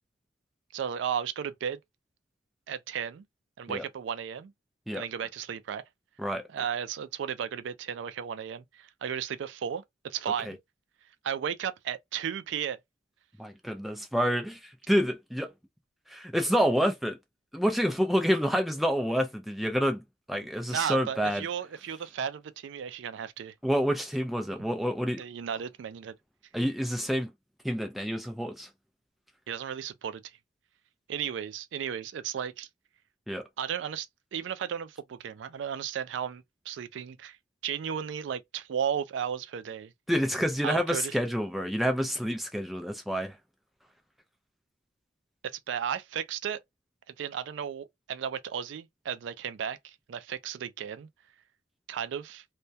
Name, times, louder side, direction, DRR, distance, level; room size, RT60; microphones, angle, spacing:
voice 1, 0.7-1.8 2.7-3.2 3.6-4.5 4.9-5.8 6.5-10.6 11.2-12.8 20.7-23.5 25.2-26.1 29.5-30.3 31.1-32.7 33.6-34.1 34.3-37.4 37.6-39.9 40.6-41.2 45.5-46.6 47.2-51.1 51.9-52.4, right 8 dB, 75° right, 0.3 m, -34 dB
voice 2, 13.4-15.5 16.1-17.2 17.5-21.4 23.6-25.2 26.5-27.3 27.6-28.7 33.3-33.4 40.1-43.4, equal, ahead, 0.4 m, -28 dB
2.2 x 2.1 x 2.6 m
head